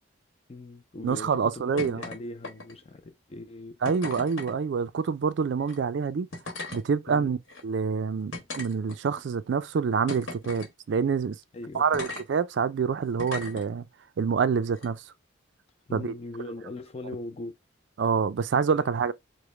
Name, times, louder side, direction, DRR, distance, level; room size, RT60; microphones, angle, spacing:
voice 1, 0.5-3.8 7.1-7.4 11.5-12.1 15.9-17.5 18.7-18.9, left 2 dB, 30° left, 0.4 m, -40 dB
voice 2, 1.0-2.0 3.8-6.3 6.7-7.4 7.6-11.4 11.7-13.9 14.2-15.0 15.9-16.1 18.0-19.1, right 6 dB, 60° right, 0.3 m, -26 dB
sound 1, 1.8-2.2 2.4-2.9 3.8-4.5 5.6-5.8 6.3-6.8 7.5-7.6 8.3-9.2 10.1-10.7 11.9-12.2 13.2-13.6 14.7-14.9, left 2 dB, 75° left, 1.2 m, -37 dB
4.9 x 2.1 x 3.1 m
head